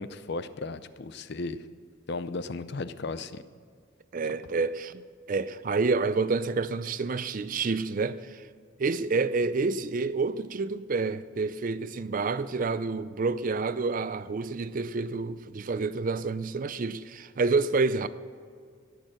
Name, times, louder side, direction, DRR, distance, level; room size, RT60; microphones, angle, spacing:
voice 1, 0.0-1.6 2.1-3.4, left 3 dB, 50° left, 0.5 m, -35 dB
voice 2, 4.1-5.0 5.3-8.5 8.8-18.1, right 4 dB, 40° right, 0.4 m, -28 dB
18.0 x 6.7 x 6.4 m
head